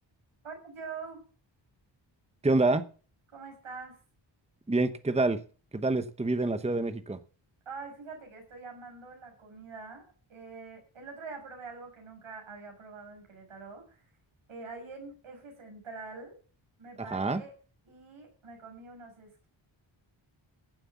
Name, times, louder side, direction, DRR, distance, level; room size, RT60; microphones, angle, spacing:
voice 1, 0.4-1.2 3.3-4.0 7.7-10.0 10.3-14.0 14.5-16.4 16.8-17.5 17.9-19.5, right 4 dB, 85° right, 2 dB, 7.2 m, -45 dB
voice 2, 2.4-2.8 4.7-5.4 5.7-7.2 17.1-17.4, right 2 dB, 15° right, 11 dB, 1.0 m, -27 dB
15.5 x 7.7 x 7.0 m, 0.38 s
wide cardioid pair, 140°, 47 cm